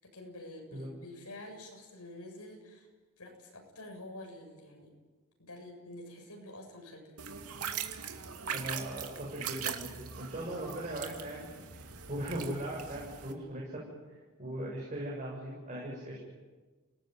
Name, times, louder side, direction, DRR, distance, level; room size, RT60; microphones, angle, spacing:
voice 1, 0.0-2.9 3.2-4.9 5.4-7.2, left 1 dB, 90° left, 2 dB, 7.9 m, -48 dB
sound 1, 7.2-13.3, right 7 dB, 85° right, 2.5 m, -41 dB
voice 2, 8.5-11.5 12.1-13.8 14.4-16.2, right 1 dB, 35° right, -4 dB, 7.7 m, -39 dB
30.0 x 19.5 x 9.4 m, 1.3 s
head